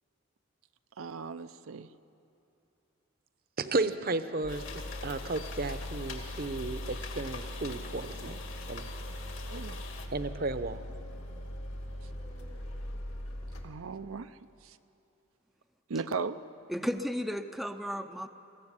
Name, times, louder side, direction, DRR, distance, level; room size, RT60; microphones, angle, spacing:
voice 1, 1.0-1.9 9.5-9.8 13.6-14.4 14.6-14.8 15.9-16.4, right 4 dB, 75° right, 10 dB, 0.6 m, -37 dB
voice 2, 3.6-8.4 8.7-8.9 9.7-9.8 10.1-10.8, right 2 dB, 45° right, 11 dB, 0.8 m, -34 dB
sound 1, 4.4-13.6, equal, 90° left, 2.5 m, -41 dB
sound 2, 4.5-10.1, left 5 dB, 65° left, 2.2 m, -45 dB
voice 3, 16.7-18.3, equal, ahead, 7 dB, 0.5 m, -34 dB
21.5 x 15.0 x 9.7 m, 2.8 s
head